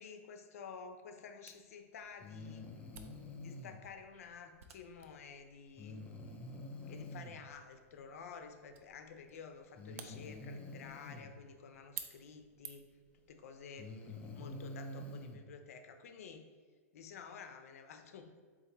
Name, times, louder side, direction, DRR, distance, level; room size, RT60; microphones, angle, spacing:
voice 1, 0.0-2.8 3.4-6.0 6.9-12.9 13.3-16.5 16.9-18.4, left 5 dB, 75° left, 7 dB, 0.5 m, -51 dB
Camera, 1.5-13.1, right 8 dB, 70° right, 0.4 m, -55 dB
Breathing, 2.2-3.8 5.8-7.4 8.7-8.8 9.7-11.3 12.8-12.9 13.6-15.4, left 2 dB, 15° left, 0.4 m, -47 dB
4.1 x 2.5 x 3.9 m, 1.5 s
supercardioid pair, 155°, 8 cm